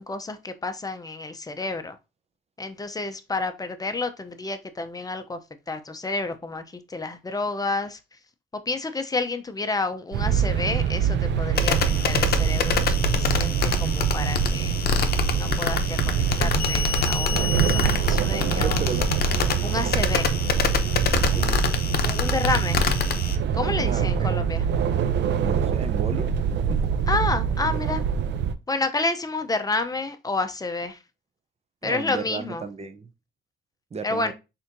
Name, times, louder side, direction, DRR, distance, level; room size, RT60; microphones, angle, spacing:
voice 1, 0.0-2.0 2.6-5.4 5.7-8.0 8.5-11.8 12.0-14.7 15.4-18.8 19.6-20.3 22.0-22.9 23.5-24.6 27.1-28.0 28.7-31.0 31.8-32.6 34.0-34.3, left 3 dB, 20° left, 0.7 m, -30 dB
sound 1, 10.1-28.5, right 8 dB, 65° right, 0.6 m, -25 dB
sound 2, 11.6-23.4, left 5 dB, 50° left, 0.7 m, -26 dB
voice 2, 18.4-19.2 21.3-21.7 23.9-24.3 25.4-26.3 26.7-26.8 31.8-33.1 33.9-34.3, right 5 dB, 30° right, 0.7 m, -33 dB
4.2 x 3.7 x 2.7 m
cardioid pair, 90°, 20 cm